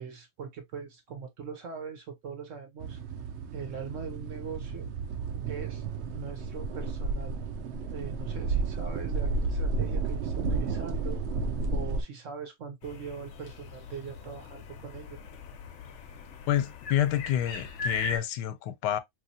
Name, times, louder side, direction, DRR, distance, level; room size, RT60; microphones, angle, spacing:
voice 1, 0.0-3.0 3.5-4.9 5.5-5.8 6.1-7.4 7.9-11.2 11.7-15.2, right 6 dB, 60° right, 0.9 m, -41 dB
sound 1, 2.8-12.0, right 3 dB, 85° right, 0.6 m, -32 dB
sound 2, 12.8-18.2, left 4 dB, 65° left, 0.7 m, -39 dB
voice 2, 16.5-19.0, left 11 dB, 90° left, 1.2 m, -28 dB
3.0 x 2.7 x 2.6 m
omnidirectional pair, 1.8 m